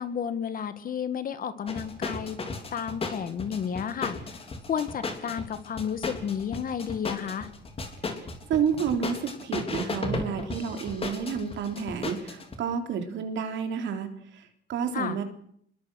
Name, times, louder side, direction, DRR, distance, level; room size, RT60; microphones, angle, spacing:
voice 1, 0.0-2.4 2.7-4.4 4.7-7.5 14.9-15.2, left 7 dB, 45° left, 12 dB, 1.9 m, -32 dB
sound 1, 1.7-12.5, left 3 dB, 30° left, 3.4 m, -35 dB
voice 2, 8.5-15.2, right 7 dB, 70° right, 6 dB, 3.9 m, -30 dB
25.5 x 22.0 x 6.4 m, 0.68 s
cardioid pair, 140°, 20 cm